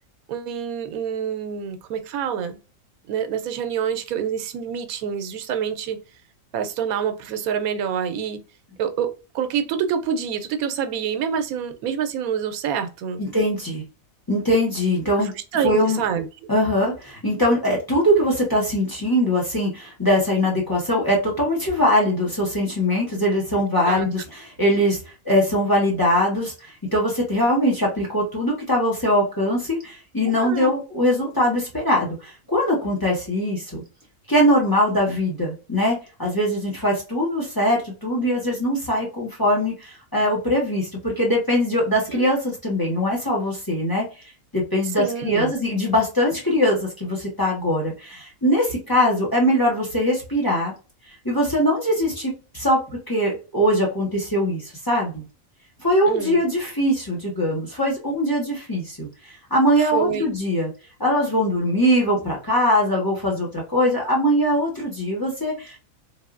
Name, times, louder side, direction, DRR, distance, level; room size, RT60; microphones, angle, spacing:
voice 1, 0.3-2.6 3.1-6.0 6.5-8.4 8.8-13.2 15.2-16.2 23.5-24.1 30.4-30.7 42.1-42.3 45.0-45.5 56.1-56.4 59.8-60.3, right 8 dB, 85° right, 1.0 m, -27 dB
voice 2, 13.2-13.8 14.3-15.3 15.6-16.0 16.5-25.0 25.2-33.8 34.3-44.1 44.5-50.7 51.2-55.2 55.8-60.7 61.0-65.8, equal, 15° left, 1.1 m, -22 dB
3.7 x 2.6 x 2.4 m
omnidirectional pair, 1.5 m